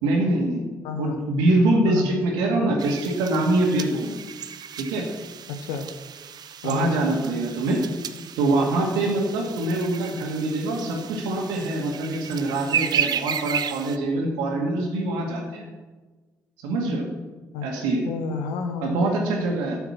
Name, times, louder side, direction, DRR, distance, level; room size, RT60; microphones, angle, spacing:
voice 1, 0.0-0.6 1.0-4.1 4.8-5.1 6.6-7.8 8.4-15.6 16.6-17.1 17.6-18.0 18.8-19.8, right 2 dB, 85° right, 1 dB, 2.1 m, -24 dB
voice 2, 0.8-1.2 1.8-2.1 5.5-5.9 6.6-6.9 17.5-17.7 18.0-19.0, left 5 dB, 85° left, 6 dB, 0.9 m, -30 dB
sound 1, 2.8-14.0, right 8 dB, 60° right, 0.7 m, -33 dB
12.5 x 5.8 x 7.3 m, 1.3 s
hypercardioid pair, 50°, 8 cm